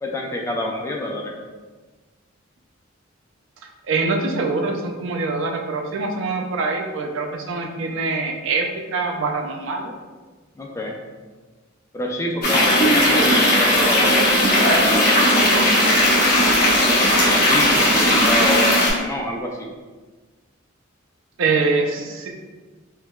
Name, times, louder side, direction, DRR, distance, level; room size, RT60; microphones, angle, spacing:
voice 1, 0.0-1.3 10.6-11.0 11.9-15.2 15.5-16.0 17.2-19.7, left 1 dB, 15° left, 1 dB, 0.3 m, -27 dB
voice 2, 3.8-9.9 21.4-22.3, right 3 dB, 70° right, 2 dB, 0.4 m, -24 dB
sound 1, 12.4-18.9, left 1 dB, 50° left, 0.9 m, -17 dB
4.4 x 2.2 x 2.2 m, 1.3 s
head